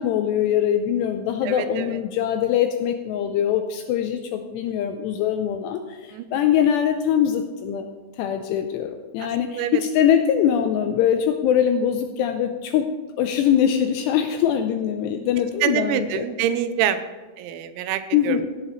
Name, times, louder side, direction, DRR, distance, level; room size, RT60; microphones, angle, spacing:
voice 1, 0.0-7.8 8.2-12.9 13.2-16.2 18.1-18.5, left 9 dB, 85° left, 6 dB, 2.5 m, -22 dB
voice 2, 1.4-2.0 6.1-6.3 9.2-9.8 15.6-17.0 17.4-18.4, right 10 dB, 80° right, 10 dB, 2.9 m, -26 dB
17.0 x 9.0 x 3.1 m, 1.3 s
omnidirectional pair, 5.4 m